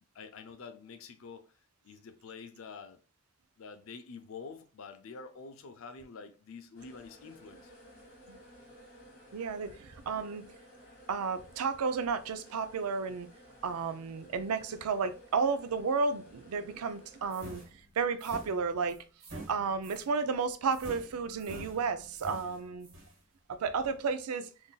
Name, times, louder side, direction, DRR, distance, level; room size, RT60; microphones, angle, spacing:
voice 1, 0.1-1.5 1.8-3.0 3.6-7.7, left 5 dB, 65° left, 0.4 m, -47 dB
sound 1, 6.7-17.7, equal, 45° left, 1.6 m, -56 dB
voice 2, 9.3-10.4 11.1-13.3 13.6-17.6 18.0-19.0 19.5-22.9 23.5-24.5, right 5 dB, 85° right, 0.4 m, -32 dB
sound 2, 17.3-20.1 20.7-23.2, right 1 dB, 60° right, 1.2 m, -47 dB
3.8 x 2.5 x 2.2 m
head